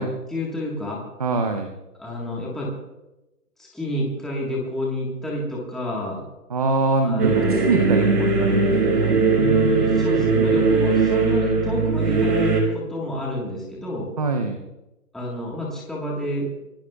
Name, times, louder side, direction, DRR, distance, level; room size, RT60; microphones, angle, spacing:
voice 1, 0.3-1.0 2.0-2.7 3.6-6.2 7.0-7.7 10.0-14.1 15.1-16.5, left 1 dB, ahead, -4 dB, 1.4 m, -29 dB
voice 2, 1.2-1.7 6.5-10.2 14.2-14.6, right 3 dB, 25° right, 6 dB, 0.7 m, -24 dB
sound 1, 7.2-12.6, right 4 dB, 90° right, 4.9 m, -19 dB
26.0 x 18.5 x 2.3 m, 0.99 s
hypercardioid pair, 160°, 46 cm